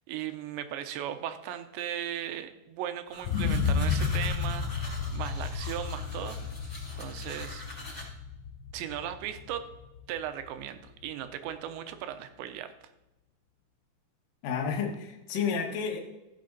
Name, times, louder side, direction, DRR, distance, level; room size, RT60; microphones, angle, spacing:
voice 1, 0.0-6.4 7.0-7.6 8.7-9.6 10.1-12.7, right 11 dB, 85° right, 9 dB, 3.1 m, -37 dB
sound 1, 3.1-8.0, left 1 dB, 15° left, 3.3 m, -44 dB
sound 2, 3.2-11.1 11.6-11.7, left 5 dB, 85° left, 3.3 m, -32 dB
voice 2, 14.4-16.0, left 6 dB, 65° left, 1 dB, 2.7 m, -31 dB
15.5 x 6.6 x 3.9 m, 0.96 s
omnidirectional pair, 5.0 m